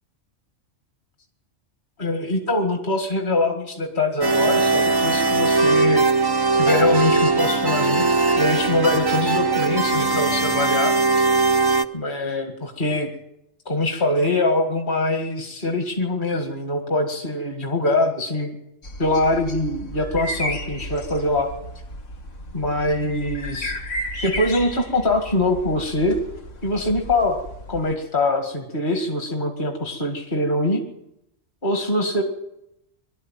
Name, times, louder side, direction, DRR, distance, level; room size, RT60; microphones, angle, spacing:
voice 1, 2.0-6.1 6.5-8.0 8.4-10.9 11.9-13.2 13.7-18.5 19.0-21.5 22.5-23.7 24.2-26.2 26.6-30.8 31.6-32.2, left 2 dB, 45° left, 3 dB, 2.2 m, -23 dB
sound 1, 4.2-11.8, right 3 dB, 20° right, 0.9 m, -20 dB
sound 2, 18.8-27.9, equal, 85° left, 2.0 m, -34 dB
23.5 x 12.5 x 9.1 m, 0.83 s
omnidirectional pair, 1.2 m